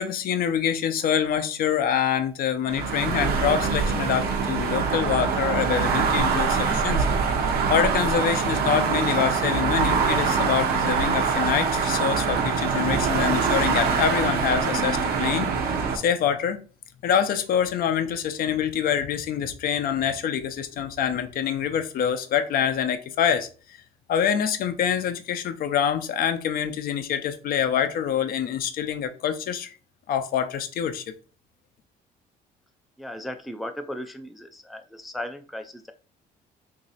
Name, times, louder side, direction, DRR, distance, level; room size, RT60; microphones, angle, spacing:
voice 1, 0.0-7.2 7.7-16.6 17.0-23.5 24.1-29.7 30.1-31.1, left 8 dB, 60° left, 0.5 m, -25 dB
sound 1, 2.7-16.0, right 5 dB, 70° right, 0.7 m, -24 dB
voice 2, 33.0-35.9, left 1 dB, ahead, 0.3 m, -36 dB
3.0 x 2.7 x 4.0 m
cardioid pair, 110°, 17 cm